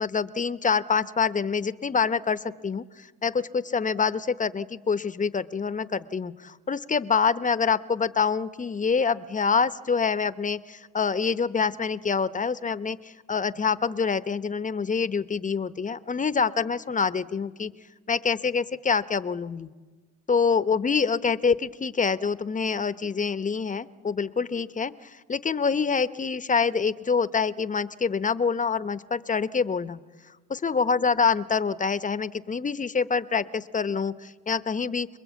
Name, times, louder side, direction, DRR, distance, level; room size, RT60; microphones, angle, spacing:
voice 1, 0.0-17.7 18.1-19.7 20.3-30.0 30.5-35.1, left 5 dB, 25° left, 14 dB, 0.8 m, -26 dB
27.0 x 21.5 x 8.3 m, 1.4 s
cardioid pair, 90°, 30 cm